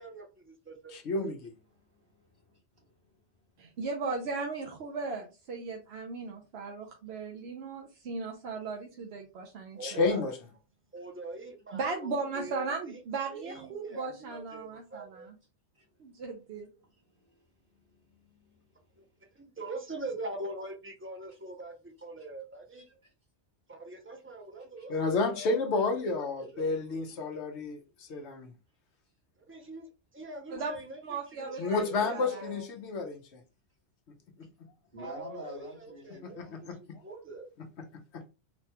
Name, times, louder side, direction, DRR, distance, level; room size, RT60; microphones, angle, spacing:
voice 1, 0.0-0.9 9.8-10.3 10.9-12.9 13.3-15.3 19.0-19.1 19.4-22.9 23.7-26.9 29.5-32.7 35.0-37.5, right 2 dB, 20° right, 0.3 m, -44 dB
voice 2, 0.9-1.5 9.8-10.3 24.9-28.5 31.6-33.2 36.2-37.0 38.1-38.3, left 3 dB, 75° left, 1.1 m, -31 dB
voice 3, 1.7-3.2 15.7-15.9 16.7-18.7 22.2-22.3 22.7-23.1 24.8-24.9 26.6-27.2 30.6-30.7 34.8-36.6, equal, 55° right, 2.1 m, -50 dB
voice 4, 3.6-10.2 11.7-15.3 16.0-16.7 30.5-30.8 31.0-32.4, right 4 dB, 70° right, 0.9 m, -37 dB
4.1 x 2.9 x 2.2 m
omnidirectional pair, 1.2 m